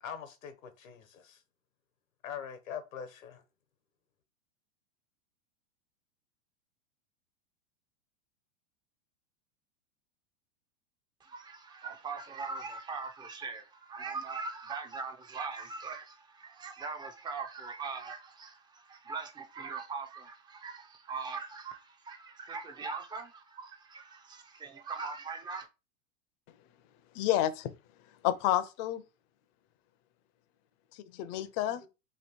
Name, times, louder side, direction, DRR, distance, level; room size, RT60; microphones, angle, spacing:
voice 1, 0.0-1.4 2.2-3.4 31.8-31.9, left 8 dB, 85° left, 1.1 m, -43 dB
voice 2, 11.2-25.7, right 4 dB, 10° right, 0.4 m, -41 dB
voice 3, 27.1-27.7 28.2-29.0 30.9-31.8, left 13 dB, 35° left, 0.5 m, -30 dB
3.1 x 2.8 x 4.3 m
hypercardioid pair, 130°, 39 cm